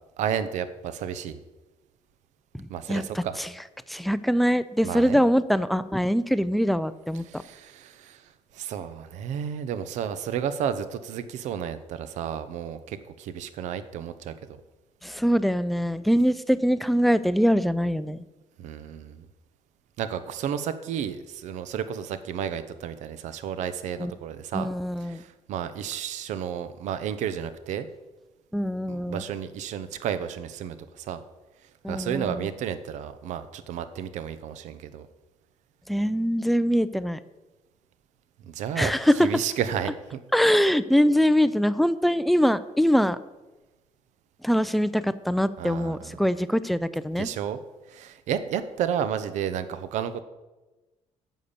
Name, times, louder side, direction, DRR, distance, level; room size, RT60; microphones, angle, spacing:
voice 1, 0.2-1.4 2.7-3.4 4.8-5.2 7.2-14.3 18.6-19.3 20.0-24.7 25.0-27.9 28.9-31.2 31.9-35.1 38.4-38.9 39.2-40.2 45.6-46.1 47.2-47.6 47.9-50.2, right 8 dB, 75° right, 12 dB, 0.8 m, -32 dB
voice 2, 2.5-3.5 3.9-7.4 15.0-18.2 24.0-24.1 24.5-25.2 28.5-29.2 31.8-32.5 35.9-37.2 38.8-39.3 40.3-43.2 44.4-47.3, equal, ahead, 14 dB, 0.4 m, -23 dB
9.3 x 7.2 x 6.8 m, 1.1 s
cardioid pair, 165°, 12 cm